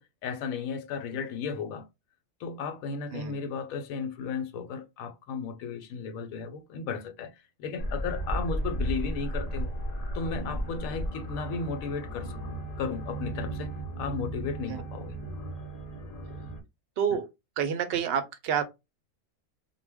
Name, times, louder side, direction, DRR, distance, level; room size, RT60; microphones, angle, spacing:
voice 1, 0.0-1.9 2.4-7.3 7.6-9.7 10.1-12.3 12.8-13.7 14.0-15.2, left 5 dB, 85° left, 1.0 m, -34 dB
sound 1, 7.8-16.6, right 1 dB, 50° left, 0.5 m, -34 dB
voice 2, 17.0-17.3 17.6-18.6, right 8 dB, 65° right, 0.6 m, -28 dB
2.2 x 2.1 x 3.3 m
omnidirectional pair, 1.4 m